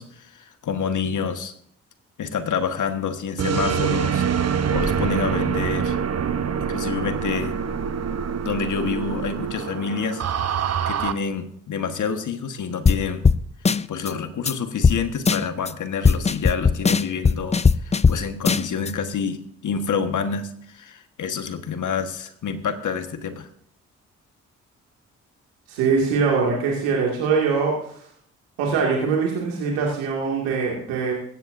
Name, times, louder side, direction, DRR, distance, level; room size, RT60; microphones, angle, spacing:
voice 1, 0.0-1.5 2.2-4.2 4.7-6.0 6.7-7.6 8.4-10.2 10.9-13.3 13.9-23.5, left 6 dB, 60° left, 8 dB, 1.5 m, -28 dB
sound 1, 3.4-11.1, right 7 dB, 45° right, 1.0 m, -25 dB
sound 2, 12.9-13.0 13.2-13.4 13.7-14.1 14.5-14.6 14.8-15.0 15.3-15.7 16.0-18.2 18.5-18.9, left 5 dB, 20° left, 0.5 m, -18 dB
voice 2, 25.7-28.0 28.6-31.1, right 5 dB, 90° right, -2 dB, 2.4 m, -22 dB
16.5 x 14.0 x 2.7 m, 0.66 s
hypercardioid pair, 45°, 34 cm